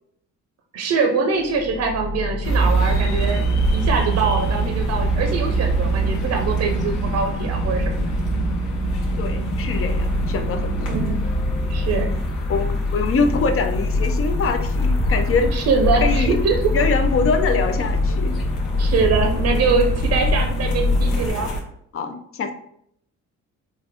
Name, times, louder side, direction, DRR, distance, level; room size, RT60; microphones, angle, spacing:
voice 1, 0.7-8.1 10.8-11.2 11.7-12.1 15.4-16.7 18.8-21.5, right 4 dB, 55° right, 4 dB, 0.6 m, -23 dB
sound 1, 1.4-21.2, left 3 dB, 5° left, 1.0 m, -26 dB
sound 2, 2.4-21.6, right 2 dB, 85° left, 1.0 m, -25 dB
voice 2, 9.2-10.9 12.5-15.5 16.0-16.4 16.7-18.3 21.9-22.5, left 4 dB, 50° left, 7 dB, 0.6 m, -24 dB
3.9 x 2.6 x 3.4 m, 0.71 s
cardioid pair, 90°, 30 cm